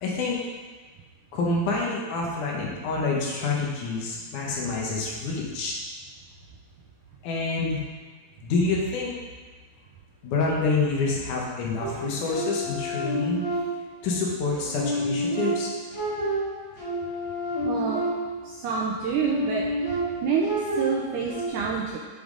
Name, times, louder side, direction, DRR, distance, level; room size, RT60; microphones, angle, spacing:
voice 1, 0.0-0.4 1.3-5.7 7.2-7.8 8.4-9.1 10.2-13.4 14.0-15.7, left 3 dB, 65° left, -2 dB, 2.5 m, -27 dB
sound 1, 11.8-14.1 14.5-18.5 19.0-21.5, right 1 dB, 40° left, 2.5 m, -29 dB
voice 2, 17.6-18.0 18.4-19.7 20.2-22.0, right 5 dB, 80° right, -2 dB, 1.9 m, -27 dB
7.3 x 6.8 x 3.9 m, 1.4 s
omnidirectional pair, 4.2 m